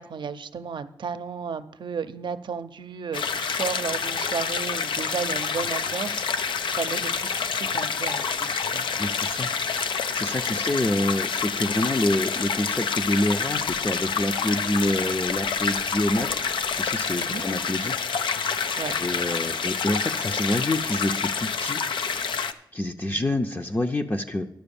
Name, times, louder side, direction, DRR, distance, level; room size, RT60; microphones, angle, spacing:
voice 1, 0.0-8.9 10.4-10.6 17.1-17.4 18.8-18.9 23.1-23.3, right 6 dB, 70° right, 11 dB, 0.6 m, -34 dB
sound 1, 3.1-22.5, left 6 dB, 85° left, 0.5 m, -28 dB
voice 2, 9.0-9.5 9.9-16.4 16.7-17.9 19.0-21.8 22.7-24.5, left 1 dB, 25° left, 4 dB, 0.6 m, -27 dB
10.5 x 6.4 x 7.0 m, 0.74 s
cardioid pair, 80°, 8 cm